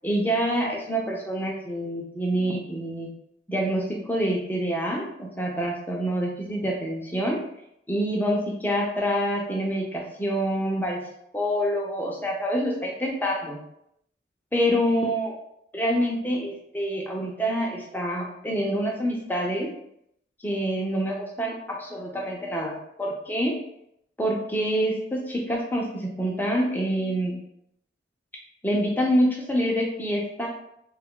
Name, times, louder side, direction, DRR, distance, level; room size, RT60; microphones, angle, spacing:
voice 1, 0.0-3.1 3.5-7.4 7.9-11.0 11.3-13.6 14.5-15.3 15.7-19.7 20.4-23.6 24.2-27.4 28.6-30.5, equal, 10° left, -2 dB, 0.6 m, -26 dB
3.1 x 2.3 x 3.6 m, 0.74 s
head